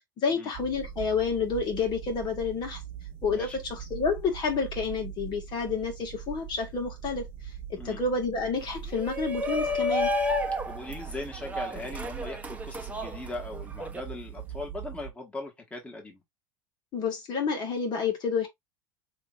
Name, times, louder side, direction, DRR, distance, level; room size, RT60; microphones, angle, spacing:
voice 1, 0.2-2.8 3.2-7.2 7.7-10.1 16.9-18.5, left 5 dB, 40° left, 2.0 m, -29 dB
sound 1, 0.5-15.1, right 9 dB, 50° right, 0.8 m, -42 dB
voice 2, 3.3-3.6 7.8-8.0 10.7-16.2, left 2 dB, 10° left, 2.0 m, -39 dB
Shout, 8.9-14.0, left 1 dB, 15° right, 1.2 m, -31 dB
6.5 x 3.0 x 2.6 m
hypercardioid pair, 100°, 11 cm